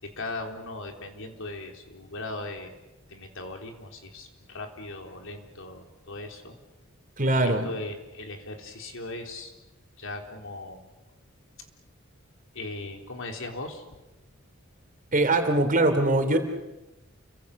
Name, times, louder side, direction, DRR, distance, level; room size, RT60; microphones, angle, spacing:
voice 1, 0.0-2.7 3.1-6.6 7.3-9.5 10.0-10.9 12.5-13.8, left 2 dB, 65° left, 4 dB, 3.8 m, -38 dB
voice 2, 7.2-7.7 15.1-16.4, right 2 dB, 40° right, 6 dB, 3.3 m, -22 dB
29.5 x 24.5 x 6.7 m, 1.0 s
head